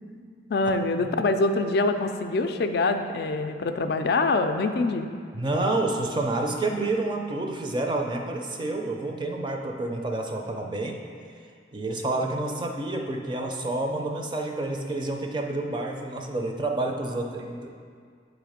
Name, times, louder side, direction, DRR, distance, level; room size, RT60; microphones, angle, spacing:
voice 1, 0.5-5.1, left 3 dB, 60° left, 7 dB, 0.4 m, -24 dB
voice 2, 5.3-11.0 11.7-17.8, right 2 dB, 25° right, 2 dB, 0.5 m, -29 dB
8.3 x 3.1 x 5.0 m, 2.1 s
head